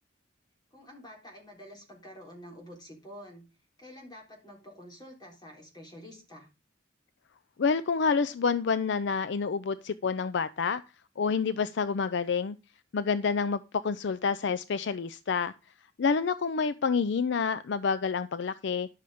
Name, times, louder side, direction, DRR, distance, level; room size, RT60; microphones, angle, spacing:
voice 1, 0.7-3.4 3.8-6.5, equal, 20° left, 3.8 m, -48 dB
voice 2, 7.6-10.8 11.2-12.6 12.9-15.5 16.0-18.9, left 5 dB, 60° left, 0.4 m, -28 dB
10.5 x 6.9 x 5.0 m
head